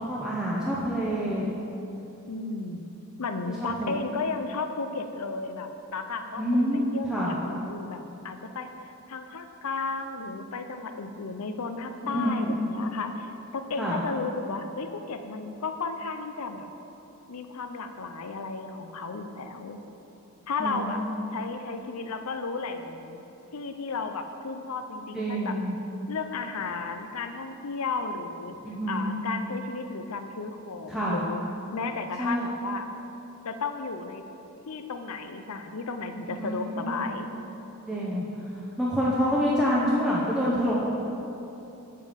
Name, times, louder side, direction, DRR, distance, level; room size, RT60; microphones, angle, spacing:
voice 1, 0.1-1.4 3.6-4.0 6.4-7.3 12.0-12.4 13.8-14.0 20.6-20.9 25.1-25.8 28.6-29.2 30.9-31.2 32.2-32.4 36.2-37.1 37.9-38.2 38.8-40.7, equal, 5° right, -7 dB, 0.9 m, -27 dB
voice 2, 2.3-2.8 3.2-8.7 9.1-16.7 17.3-19.8 20.5-21.0 21.3-23.2 23.5-25.6 26.1-28.5 28.9-31.4 31.7-32.8 33.4-34.2 34.7-37.3, left 4 dB, 85° left, 7 dB, 0.6 m, -34 dB
9.1 x 7.6 x 5.2 m, 3.0 s
head